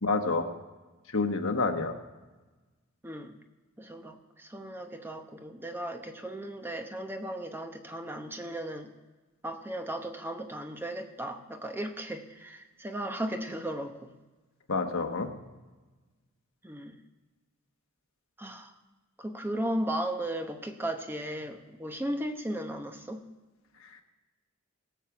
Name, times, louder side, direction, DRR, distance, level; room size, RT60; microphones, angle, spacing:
voice 1, 0.0-0.5 1.1-1.9 14.7-15.3, left 3 dB, 75° left, 5 dB, 1.3 m, -28 dB
voice 2, 3.0-3.4 3.8-8.9 9.4-14.1 16.6-17.0 18.4-18.8 19.2-23.3, right 1 dB, 10° right, 5 dB, 0.9 m, -36 dB
18.0 x 7.4 x 6.0 m, 1.2 s
head